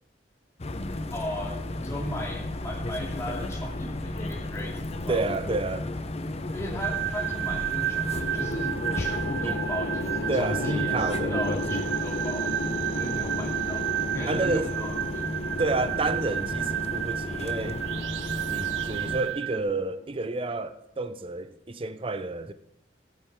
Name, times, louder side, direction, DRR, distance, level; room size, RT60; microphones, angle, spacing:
sound 1, 0.6-19.2, left 1 dB, 35° left, 0.7 m, -34 dB
voice 1, 1.1-5.2 6.5-12.5 12.9-15.3, left 1 dB, 15° left, 2.7 m, -37 dB
voice 2, 5.1-5.9 9.4-9.6 10.3-11.4 14.3-14.7 15.6-17.8 18.5-22.5, right 3 dB, 30° right, 0.6 m, -30 dB
sound 2, 6.8-19.6, right 12 dB, 85° right, 0.4 m, -32 dB
sound 3, 8.1-20.4, left 2 dB, 75° left, 1.1 m, -36 dB
15.5 x 8.5 x 3.6 m
head